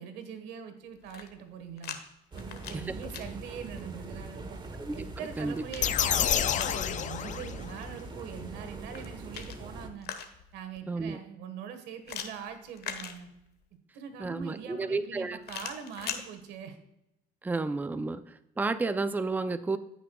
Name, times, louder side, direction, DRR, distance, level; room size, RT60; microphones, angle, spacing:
voice 1, 0.0-2.0 2.3-4.6 4.9-10.1 10.5-13.3 13.9-16.8, right 7 dB, 85° right, 8 dB, 1.5 m, -43 dB
sound 1, 0.9-2.0 2.3-3.2 4.9-6.8 8.8-10.6 12.1-13.6 15.4-16.2, left 8 dB, 70° left, 1.2 m, -41 dB
sound 2, 2.3-9.9, right 3 dB, 25° right, 1.2 m, -42 dB
sound 3, 5.8-7.9, left 9 dB, 45° left, 0.5 m, -29 dB
voice 2, 10.9-11.2 14.2-15.4 17.4-18.2 18.6-19.8, right 3 dB, 10° right, 10 dB, 0.5 m, -31 dB
15.0 x 6.0 x 2.3 m, 0.84 s
cardioid pair, 110°, 17 cm